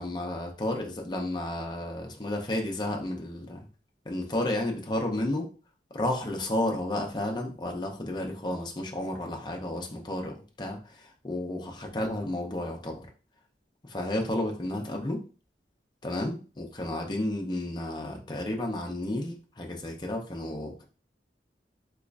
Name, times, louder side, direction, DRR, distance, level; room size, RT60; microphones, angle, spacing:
voice 1, 0.0-3.6 4.1-5.5 5.9-13.1 13.8-15.2 16.0-20.8, left 1 dB, 25° left, 1 dB, 0.6 m, -32 dB
3.6 x 3.0 x 2.5 m, 0.36 s
head